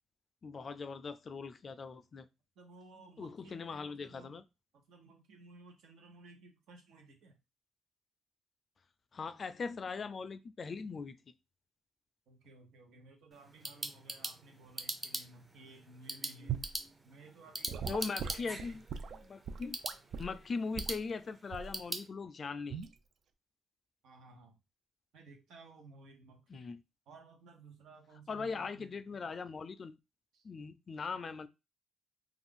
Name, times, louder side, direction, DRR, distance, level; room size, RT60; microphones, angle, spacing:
voice 1, 0.4-2.3 3.2-4.4 9.1-11.2 17.9-18.8 19.2-19.8 20.2-22.9 26.5-26.8 28.3-30.0 30.4-31.5, left 4 dB, 40° left, 0.3 m, -40 dB
voice 2, 2.6-4.4 4.7-7.4 12.3-16.6 17.0-18.8 24.0-24.6 25.1-26.8 27.1-29.3 30.3-30.5, right 3 dB, 80° right, 0.9 m, -57 dB
sound 1, 13.3-22.1, right 2 dB, 20° right, 0.6 m, -43 dB
Gurgling / Sink (filling or washing) / Liquid, 16.5-16.8 17.7-20.4 20.7-21.0 21.5-21.8 22.7-22.9, right 7 dB, 65° right, 0.3 m, -40 dB
2.4 x 2.4 x 3.6 m
cardioid pair, 90°, 0 cm